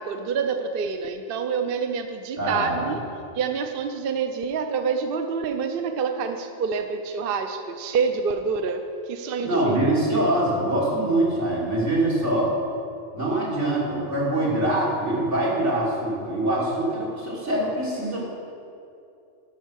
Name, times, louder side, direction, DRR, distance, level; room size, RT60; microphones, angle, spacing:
voice 1, 0.0-3.0 3.3-9.8, right 5 dB, 60° right, 6 dB, 0.8 m, -27 dB
voice 2, 2.4-2.9 9.4-12.5 13.1-18.3, right 1 dB, 85° right, -6 dB, 3.2 m, -24 dB
12.5 x 6.4 x 6.3 m, 2.6 s
omnidirectional pair, 1.2 m